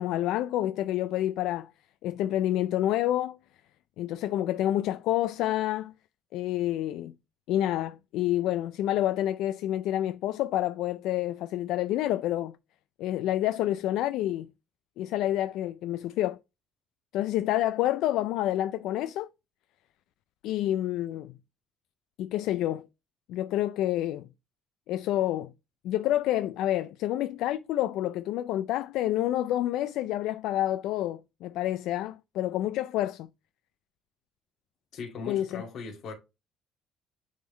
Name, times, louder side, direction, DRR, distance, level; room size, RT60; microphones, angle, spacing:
voice 1, 0.0-1.7 2.0-3.4 4.0-5.9 6.3-7.1 7.5-12.6 13.0-14.5 15.0-16.4 17.1-19.3 20.4-21.4 22.2-22.9 23.3-24.3 24.9-25.5 25.8-33.3 35.3-35.6, left 13 dB, 70° left, 0.4 m, -28 dB
voice 2, 34.9-36.1, left 5 dB, 50° left, 2.3 m, -39 dB
9.4 x 3.7 x 3.3 m
cardioid pair, 180°, 0 cm